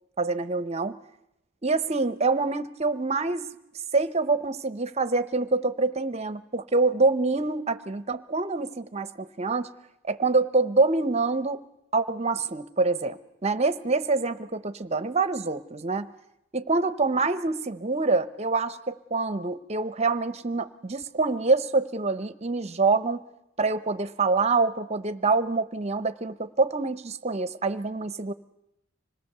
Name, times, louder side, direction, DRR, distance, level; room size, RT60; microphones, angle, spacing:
voice 1, 0.2-1.0 1.6-3.5 3.9-9.7 10.1-11.6 11.9-16.1 16.5-23.2 23.6-28.3, right 3 dB, 30° right, 13 dB, 0.8 m, -26 dB
26.0 x 19.0 x 6.8 m, 0.83 s
head